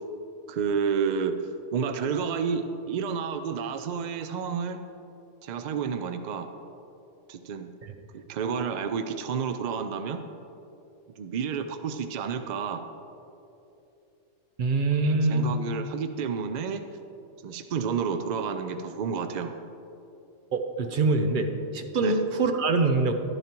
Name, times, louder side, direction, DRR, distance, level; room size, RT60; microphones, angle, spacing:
voice 1, 0.5-1.4 1.7-4.8 5.4-6.5 7.3-7.7 8.1-10.2 11.2-12.8 15.0-16.8 17.4-19.5 22.0-22.1, right 6 dB, 70° right, 8 dB, 0.4 m, -30 dB
voice 2, 14.6-15.5 20.5-21.5 21.7-23.1, right 3 dB, 50° right, 6 dB, 0.8 m, -24 dB
11.5 x 11.0 x 2.9 m, 2.8 s
omnidirectional pair, 1.3 m